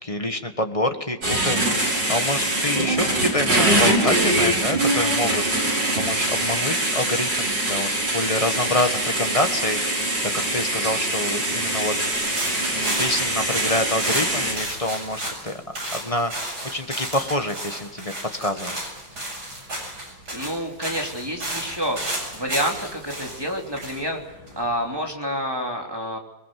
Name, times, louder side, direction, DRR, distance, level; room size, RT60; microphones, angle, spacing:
voice 1, 0.0-5.4 6.0-10.0 10.5-11.9 12.7-15.6 15.9-16.3 16.7-18.1 18.4-18.9, left 1 dB, 20° left, 6 dB, 1.7 m, -26 dB
sound 1, 1.2-14.5, right 1 dB, 80° right, 6.5 m, -23 dB
sound 2, 12.1-24.9, right 1 dB, 65° right, 8.0 m, -33 dB
voice 2, 20.3-24.2 24.5-26.2, equal, 15° right, 1 dB, 3.3 m, -28 dB
22.0 x 22.0 x 7.8 m, 1.0 s
omnidirectional pair, 1.9 m